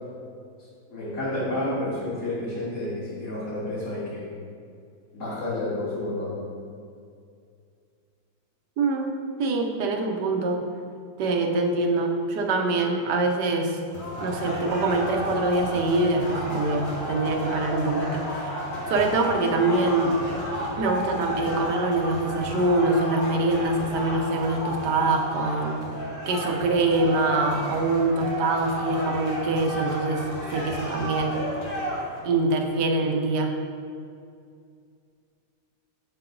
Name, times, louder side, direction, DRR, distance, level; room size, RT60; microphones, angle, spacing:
voice 1, 0.9-4.3 5.1-6.5, left 1 dB, 40° left, -6 dB, 2.3 m, -30 dB
voice 2, 8.8-10.6 11.2-13.8 14.2-18.5 18.9-20.2 20.7-25.8 26.3-31.4 32.2-33.6, right 2 dB, 65° right, 2 dB, 1.4 m, -24 dB
sound 1, 13.9-32.2, equal, 70° left, 3.1 m, -32 dB
8.1 x 6.9 x 3.8 m, 2.3 s
omnidirectional pair, 2.1 m